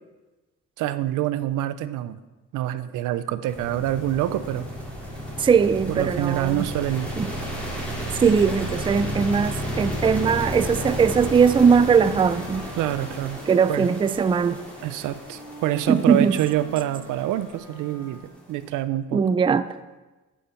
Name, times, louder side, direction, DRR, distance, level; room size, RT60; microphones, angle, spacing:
voice 1, 0.8-2.2 2.5-4.7 5.9-7.1 12.8-13.4 13.7-13.9 14.8-19.2, right 13 dB, 85° right, 0.6 m, -26 dB
sound 1, 3.5-18.6, equal, 5° left, 3.6 m, -33 dB
voice 2, 5.4-6.7 7.2-7.3 8.2-12.7 13.5-14.6 15.9-16.3 19.1-19.7, right 6 dB, 15° right, 0.3 m, -20 dB
Wind instrument woodwind instrument, 11.1-18.6, left 1 dB, 70° left, 2.7 m, -45 dB
9.0 x 8.4 x 4.4 m
cardioid pair, 90°, 30 cm